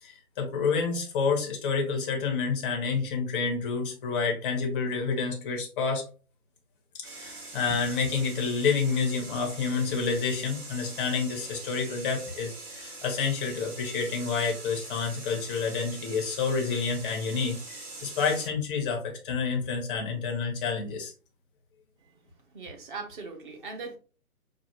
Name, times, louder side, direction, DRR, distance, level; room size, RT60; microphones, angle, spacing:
voice 1, 0.0-6.1 7.0-21.1, left 5 dB, 5° left, 1 dB, 0.5 m, -29 dB
sound 1, 7.0-18.5, right 2 dB, 75° right, 1.9 m, -43 dB
voice 2, 22.5-24.0, right 4 dB, 35° right, 4 dB, 0.9 m, -39 dB
5.8 x 2.4 x 3.0 m, 0.35 s
hypercardioid pair, 140°, 45 cm